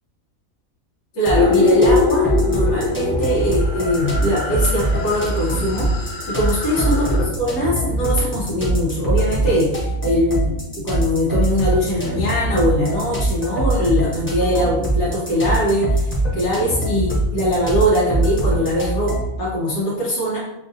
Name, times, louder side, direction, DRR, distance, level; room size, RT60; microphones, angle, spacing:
voice 1, 1.1-5.9 6.3-20.4, equal, 90° left, -6 dB, 1.4 m, -21 dB
sound 1, 1.2-19.4, right 1 dB, 10° left, 0.7 m, -23 dB
sound 2, 1.3-7.3, left 4 dB, 65° left, 0.9 m, -23 dB
5.9 x 2.4 x 2.7 m, 0.93 s
omnidirectional pair, 1.5 m